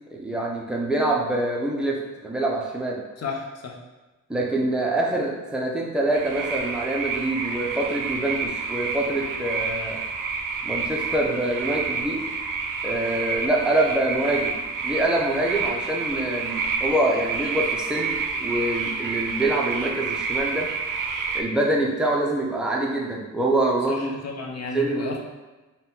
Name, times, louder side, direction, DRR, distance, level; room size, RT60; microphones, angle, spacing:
voice 1, 0.1-3.0 4.3-10.0 10.6-12.3 12.8-14.6 14.8-20.7 21.3-24.1 24.7-25.2, right 1 dB, 5° right, -3 dB, 0.4 m, -25 dB
voice 2, 3.2-3.8 23.9-25.2, left 4 dB, 55° left, 1 dB, 0.6 m, -32 dB
sound 1, 6.1-21.4, right 5 dB, 90° right, 0.5 m, -29 dB
4.1 x 2.2 x 3.7 m, 1.2 s
wide cardioid pair, 180°, 31 cm